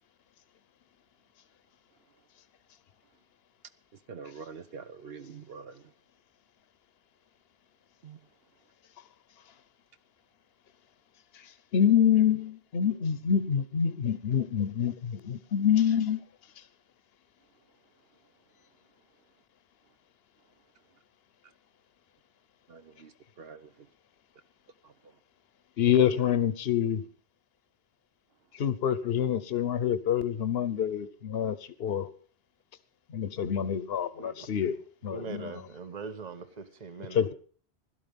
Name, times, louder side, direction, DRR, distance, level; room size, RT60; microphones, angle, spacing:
voice 1, 4.1-5.9 8.0-8.2 22.7-23.9 24.8-25.2, right 5 dB, 65° right, 11 dB, 1.2 m, -46 dB
voice 2, 11.4-16.2 25.8-27.0 28.5-32.1 33.1-34.8 35.0-35.5 37.1-37.3, left 8 dB, 65° left, 13 dB, 1.1 m, -26 dB
voice 3, 34.2-34.7 35.1-37.3, right 5 dB, 40° right, 10 dB, 1.2 m, -42 dB
16.5 x 12.5 x 5.3 m, 0.43 s
omnidirectional pair, 1.1 m